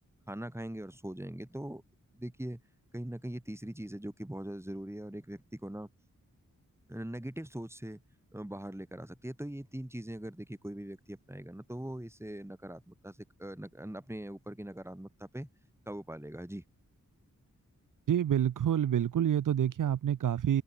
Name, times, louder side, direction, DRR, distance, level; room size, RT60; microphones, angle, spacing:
voice 1, 0.3-1.8 2.1-2.6 2.9-5.9 6.9-8.0 8.3-15.5 15.9-16.6, right 1 dB, 10° right, 5.4 m, -41 dB
voice 2, 18.1-20.6, right 10 dB, 70° right, 0.6 m, -27 dB
open air
cardioid pair, 65°, 33 cm